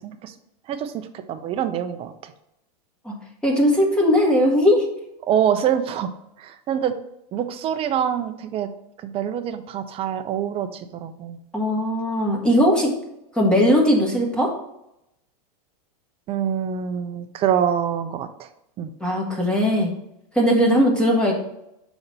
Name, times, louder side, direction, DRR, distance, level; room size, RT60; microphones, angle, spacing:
voice 1, 0.0-0.3 0.7-2.3 5.3-6.1 6.4-6.9 7.3-8.7 9.0-11.4 16.3-18.5 18.8-18.9, right 9 dB, 30° right, 8 dB, 0.6 m, -25 dB
voice 2, 3.4-4.8 11.5-12.9 13.3-14.5 19.0-19.9 20.3-21.3, equal, 5° left, -1 dB, 1.4 m, -19 dB
5.8 x 4.1 x 5.3 m, 0.83 s
supercardioid pair, 135°, 20 cm